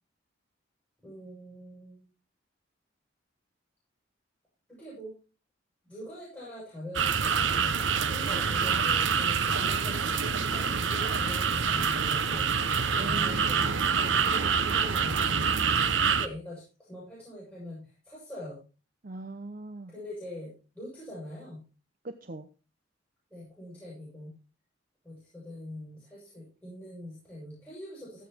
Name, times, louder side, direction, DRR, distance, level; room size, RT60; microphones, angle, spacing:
voice 1, 1.0-2.0 4.7-5.2 5.9-12.5 12.9-18.6 19.9-21.6 23.3-24.3 25.0-28.3, left 1 dB, 10° left, -8 dB, 8.0 m, -43 dB
sound 1, 6.9-16.3, right 6 dB, 75° right, 1.0 m, -26 dB
voice 2, 13.0-13.8 19.0-19.9 22.0-22.5, right 2 dB, 45° right, 9 dB, 0.8 m, -40 dB
15.5 x 8.3 x 4.5 m, 0.34 s
head